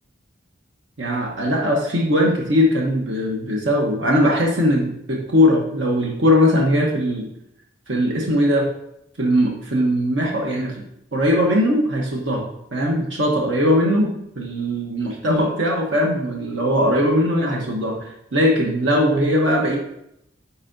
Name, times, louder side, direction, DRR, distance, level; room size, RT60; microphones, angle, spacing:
voice 1, 1.0-7.3 7.9-8.7 9.2-10.8 11.1-14.1 14.4-19.8, equal, 65° right, -1 dB, 0.9 m, -20 dB
8.1 x 4.5 x 2.6 m, 0.79 s
head